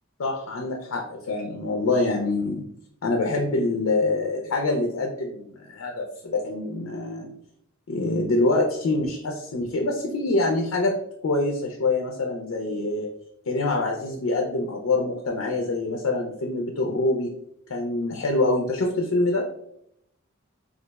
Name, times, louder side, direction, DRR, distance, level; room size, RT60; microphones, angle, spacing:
voice 1, 0.2-2.6 3.0-7.3 7.9-10.9 11.2-13.1 13.5-17.3 17.7-19.5, left 2 dB, 75° left, 1 dB, 0.5 m, -25 dB
4.0 x 2.4 x 2.2 m, 0.74 s
head